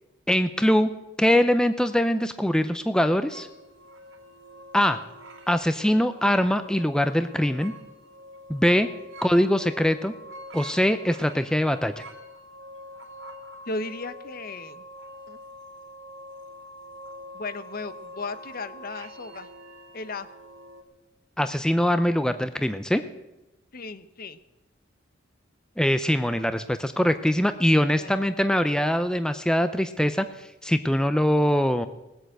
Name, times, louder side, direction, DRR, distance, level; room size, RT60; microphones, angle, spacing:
voice 1, 0.3-0.9 1.2-3.5 4.7-5.0 5.5-7.7 8.5-8.9 9.2-10.1 10.5-12.0 21.4-23.0 25.8-31.9, equal, 5° left, 10 dB, 0.5 m, -22 dB
sound 1, 3.3-20.8, equal, 85° right, 2.7 m, -45 dB
voice 2, 13.7-14.8 15.3-15.4 17.3-19.5 19.9-20.3 23.7-24.4 27.9-28.1, left 3 dB, 50° left, 13 dB, 0.8 m, -36 dB
19.0 x 8.1 x 7.8 m, 0.99 s
head